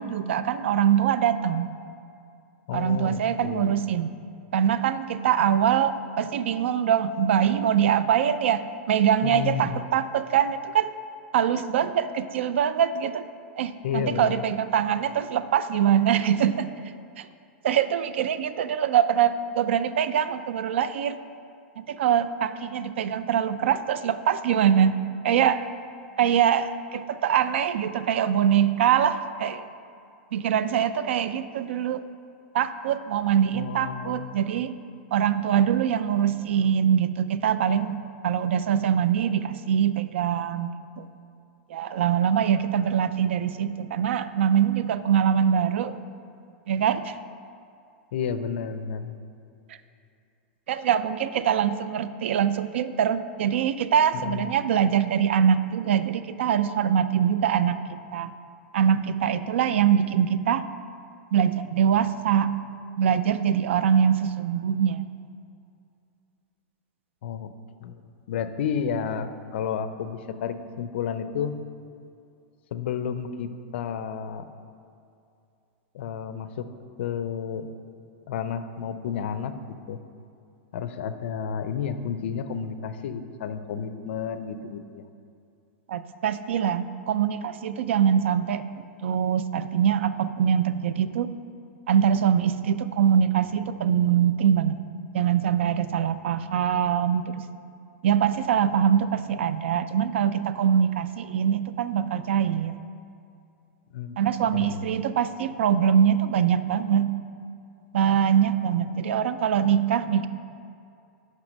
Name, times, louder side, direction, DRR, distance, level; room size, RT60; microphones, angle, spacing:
voice 1, 0.0-1.7 2.7-4.1 4.5-10.9 11.3-13.3 13.6-16.7 17.2-17.3 17.6-21.2 21.8-24.9 25.2-25.6 26.2-29.6 30.3-32.0 32.5-34.7 35.1-38.0 38.2-41.1 41.7-46.0 46.7-47.1 50.7-57.8 58.1-58.3 58.7-60.6 61.3-62.6 63.0-65.1 85.9-91.4 91.9-94.8 95.1-97.4 98.0-102.8 104.2-107.1 107.9-110.3, right 8 dB, 85° right, 13 dB, 0.4 m, -23 dB
voice 2, 2.7-3.7 9.2-9.9 13.8-14.4 33.5-34.3 48.1-49.1 54.1-54.5 67.2-67.5 67.8-68.0 68.3-71.5 72.7-74.5 75.9-76.7 77.0-77.7 78.3-79.5 79.9-80.0 80.7-85.0 103.9-104.2 104.5-104.8, left 7 dB, 70° left, 10 dB, 0.5 m, -31 dB
5.9 x 5.6 x 5.2 m, 2.5 s
supercardioid pair, 160°, 6 cm